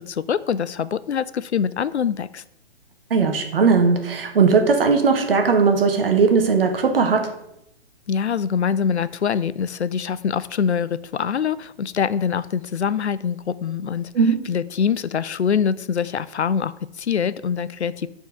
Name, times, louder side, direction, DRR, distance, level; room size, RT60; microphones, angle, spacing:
voice 1, 0.1-2.4 8.1-14.1 14.5-18.1, left 7 dB, 85° left, 17 dB, 0.5 m, -24 dB
voice 2, 3.1-7.3 14.1-14.4, right 5 dB, 60° right, 5 dB, 1.3 m, -18 dB
5.4 x 4.6 x 6.1 m, 0.80 s
figure-of-eight pair, 130°, 32 cm